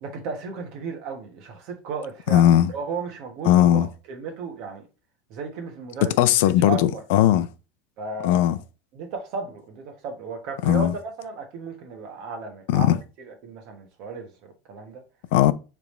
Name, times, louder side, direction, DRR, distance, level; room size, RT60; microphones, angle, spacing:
voice 1, 0.0-4.8 5.3-6.2 6.6-7.0 8.0-8.6 8.9-15.0, right 4 dB, 50° right, 1.2 m, -35 dB
voice 2, 2.3-2.7 3.5-3.9 6.2-7.5 8.2-8.6 10.6-10.9 12.7-13.0 15.3-15.5, left 12 dB, 70° left, 0.4 m, -18 dB
4.9 x 3.4 x 3.1 m
supercardioid pair, 150°, 0 cm